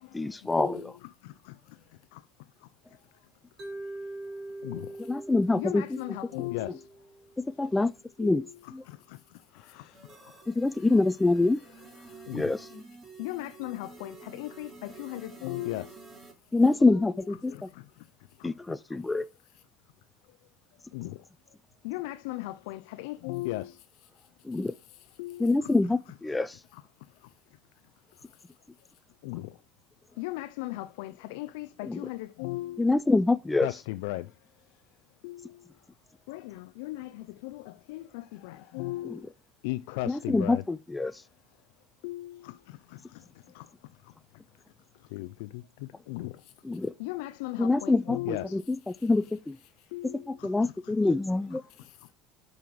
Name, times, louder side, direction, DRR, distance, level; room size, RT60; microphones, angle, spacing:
voice 1, 0.1-0.9 5.1-5.8 7.4-7.9 8.2-8.4 8.7-8.8 10.5-11.6 12.3-12.6 16.5-17.5 18.4-19.3 24.4-24.7 25.4-26.6 31.9-32.0 32.8-33.7 39.1-39.2 40.1-41.2 46.6-46.9 47.6-49.6 50.0-51.6, left 3 dB, 10° left, 0.3 m, -25 dB
Mallet percussion, 3.6-7.7, right 2 dB, 40° right, 2.2 m, -43 dB
voice 2, 5.6-6.8 8.2-8.5 12.3-12.4 13.2-15.9 16.8-17.1 20.9-21.1 21.8-23.7 25.2-25.5 29.3-29.4 30.2-32.8 33.6-34.2 35.2-35.4 36.3-37.1 37.4-37.6 37.9-39.2 39.6-40.6 42.0-42.3 45.1-45.3 46.1-46.3 47.0-48.5 49.9-50.2, left 18 dB, 80° left, 0.4 m, -36 dB
voice 3, 9.5-10.0 12.0-12.3 12.7-12.8 16.7-16.8 17.2-17.6 38.4-38.8 48.9-49.1 51.8-52.1, left 8 dB, 65° left, 1.4 m, -54 dB
sound 1, 9.9-16.3, right 3 dB, 25° right, 2.5 m, -50 dB
6.2 x 5.3 x 4.5 m
supercardioid pair, 105°, 0 cm